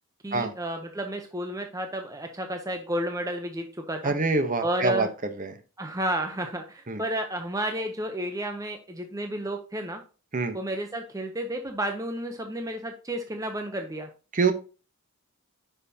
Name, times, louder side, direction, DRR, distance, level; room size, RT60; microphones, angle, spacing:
voice 1, 0.2-4.1 4.6-5.1 5.8-10.0 10.5-14.1, right 1 dB, 15° right, 4 dB, 0.7 m, -31 dB
voice 2, 4.0-5.1 5.4-5.6 6.9-7.0 10.3-10.6 14.3-14.5, right 3 dB, 35° right, 9 dB, 0.9 m, -25 dB
10.0 x 5.7 x 2.8 m, 0.34 s
head